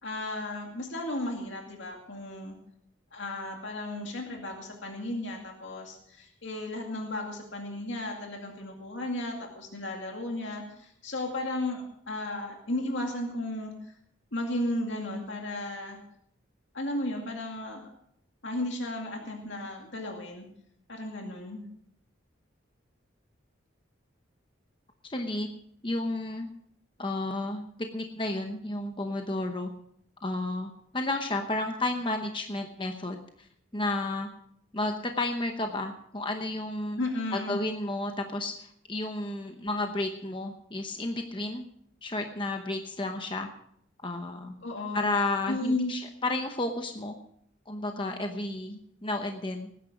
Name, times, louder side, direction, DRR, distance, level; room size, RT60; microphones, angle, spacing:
voice 1, 0.0-2.6 3.1-13.9 14.3-16.0 16.7-17.9 18.4-20.5 20.9-21.6 37.0-37.6 44.6-45.1 45.5-45.9, left 1 dB, 70° left, 1 dB, 2.2 m, -34 dB
voice 2, 25.0-25.5 25.8-26.5 27.0-27.7 27.9-29.7 30.2-33.5 33.7-34.3 34.7-37.0 37.3-41.6 42.0-43.5 44.0-44.5 44.9-47.1 47.7-49.7, left 2 dB, 25° left, 5 dB, 0.9 m, -32 dB
19.0 x 10.0 x 5.0 m, 0.69 s
head